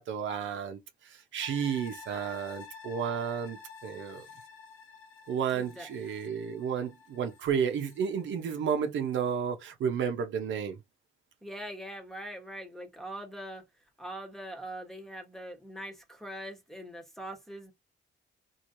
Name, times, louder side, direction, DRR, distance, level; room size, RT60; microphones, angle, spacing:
voice 1, 0.0-4.3 5.3-10.8, right 7 dB, 75° right, 0.9 m, -32 dB
sound 1, 1.4-8.7 9.1-9.2, left 5 dB, 85° left, 1.1 m, -50 dB
voice 2, 5.5-5.9 11.4-13.6 14.0-17.7, right 1 dB, ahead, 1.2 m, -42 dB
3.1 x 2.8 x 2.7 m
cardioid pair, 90°, 20 cm